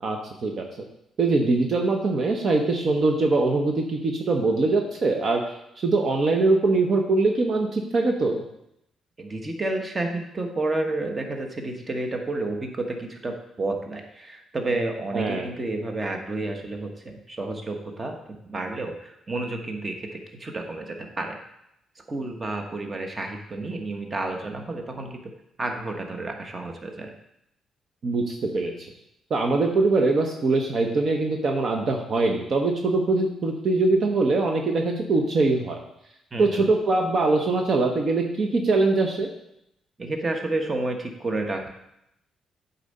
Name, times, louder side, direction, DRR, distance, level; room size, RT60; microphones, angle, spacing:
voice 1, 0.0-0.7 1.2-5.4 5.8-8.4 15.1-15.5 28.0-28.7 29.3-35.8 36.4-39.3, right 3 dB, 50° right, 2 dB, 0.9 m, -22 dB
voice 2, 9.2-21.4 22.1-25.2 25.6-27.1 36.3-36.7 40.0-41.7, right 2 dB, 25° right, 3 dB, 1.2 m, -30 dB
8.2 x 4.1 x 5.4 m, 0.80 s
cardioid pair, 90°, 0 cm